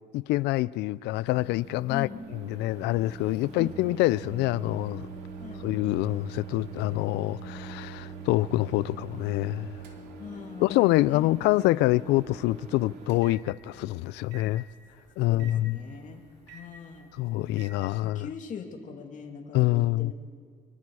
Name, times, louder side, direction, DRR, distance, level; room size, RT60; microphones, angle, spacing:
voice 1, 0.1-2.1 2.5-5.1 5.6-9.7 10.6-14.6 15.2-15.8 17.2-18.3 19.5-20.1, left 18 dB, 85° left, 0.4 m, -26 dB
Microwave oven, 1.3-17.7, right 5 dB, 85° right, 2.4 m, -44 dB
voice 2, 1.9-2.2 3.6-3.7 5.4-5.6 10.2-10.7 11.0-11.3 15.2-16.2 16.5-17.1 17.9-20.1, left 6 dB, 50° left, 2.7 m, -41 dB
25.5 x 23.5 x 4.8 m
cardioid pair, 110°, 17 cm